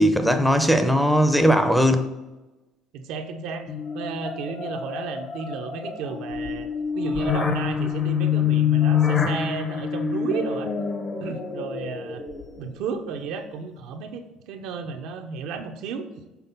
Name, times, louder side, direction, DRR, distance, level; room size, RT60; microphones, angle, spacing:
voice 1, 0.0-2.1, equal, ahead, 0.6 m, -19 dB
voice 2, 2.9-10.7 11.2-12.2 12.6-16.1, right 5 dB, 75° right, 0.6 m, -33 dB
sound 1, 3.7-12.8, left 7 dB, 35° left, 0.9 m, -26 dB
5.9 x 3.9 x 5.3 m
cardioid pair, 110°, 0 cm